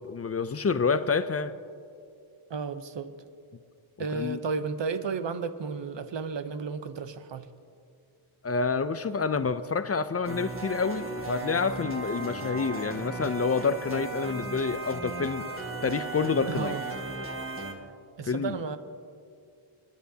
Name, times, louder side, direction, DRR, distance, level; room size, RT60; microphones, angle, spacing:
voice 1, 0.0-1.6 4.1-4.4 8.4-15.5 15.8-16.7 18.2-18.6, left 5 dB, 30° left, 0.4 m, -28 dB
voice 2, 2.5-3.1 4.0-7.5 16.5-16.8 18.2-18.8, right 4 dB, 60° right, 0.8 m, -33 dB
sound 1, 10.2-17.7, right 3 dB, 25° right, 1.5 m, -36 dB
27.5 x 10.5 x 2.8 m
wide cardioid pair, 95°, 50 cm